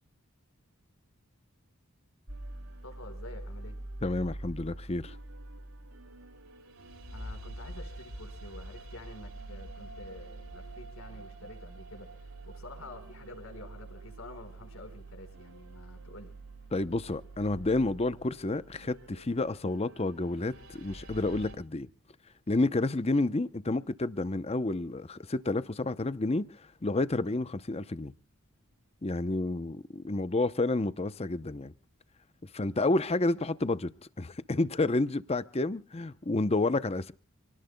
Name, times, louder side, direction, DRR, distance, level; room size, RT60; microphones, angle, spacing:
sound 1, 2.3-21.5, right 2 dB, 75° right, 6.1 m, -45 dB
voice 1, 2.8-3.8 7.1-16.3, left 2 dB, 70° left, 4.9 m, -48 dB
voice 2, 4.0-5.2 16.7-21.9 22.5-26.5 26.8-28.1 29.0-31.7 32.5-33.9 34.2-37.1, left 2 dB, 30° left, 0.7 m, -30 dB
28.0 x 18.5 x 2.2 m
head